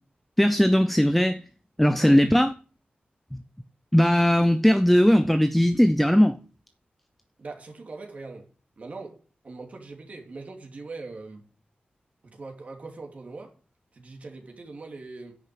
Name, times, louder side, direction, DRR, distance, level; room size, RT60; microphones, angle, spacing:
voice 1, 0.4-1.4 1.8-2.5 3.9-6.4, equal, 5° left, 0.5 m, -19 dB
voice 2, 7.4-8.5 8.8-9.2 9.4-11.4 12.2-13.5 13.9-15.4, right 3 dB, 45° right, 2.8 m, -41 dB
10.0 x 6.6 x 8.7 m
wide cardioid pair, 175°, 3 cm